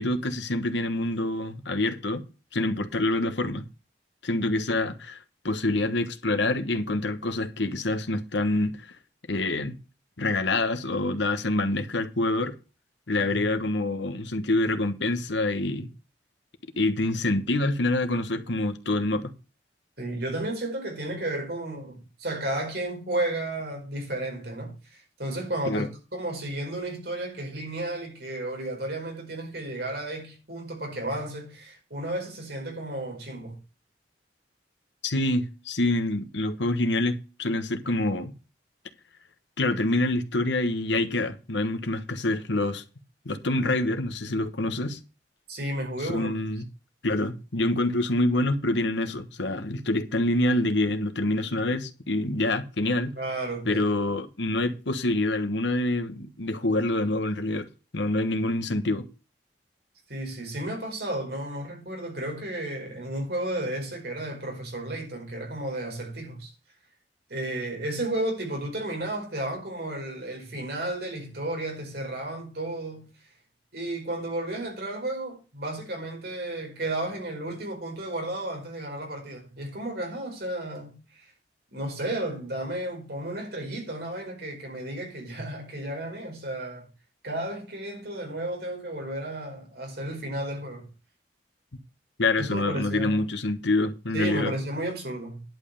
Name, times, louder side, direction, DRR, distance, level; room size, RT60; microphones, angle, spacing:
voice 1, 0.0-2.2 2.5-3.6 4.2-5.2 5.4-8.9 9.3-9.8 10.2-12.6 13.1-15.9 16.8-19.3 25.7-25.9 35.0-38.3 39.6-42.8 43.2-45.0 46.0-46.6 47.0-53.1 53.6-57.7 57.9-59.0 92.2-94.5, left 2 dB, 80° left, 1.3 m, -26 dB
voice 2, 20.0-33.6 45.5-46.4 53.2-53.9 60.1-66.5 67.3-73.1 73.7-81.3 81.7-86.9 87.2-90.9 92.4-93.2 94.1-95.4, right 1 dB, 60° right, 5.0 m, -33 dB
11.0 x 5.5 x 6.8 m
head